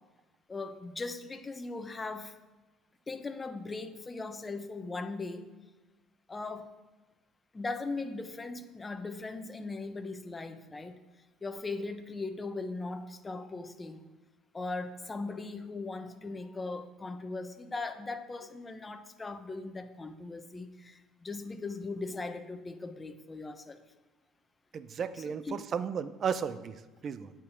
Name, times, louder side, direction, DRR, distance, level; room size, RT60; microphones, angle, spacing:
voice 1, 0.5-2.4 3.1-5.5 6.3-6.7 7.5-11.0 11.4-14.0 14.5-23.8 25.0-25.6, left 3 dB, 25° left, 8 dB, 1.0 m, -39 dB
voice 2, 24.7-27.3, right 7 dB, 45° right, 14 dB, 0.7 m, -34 dB
8.5 x 6.3 x 8.4 m, 1.2 s
figure-of-eight pair, 55°, 0 cm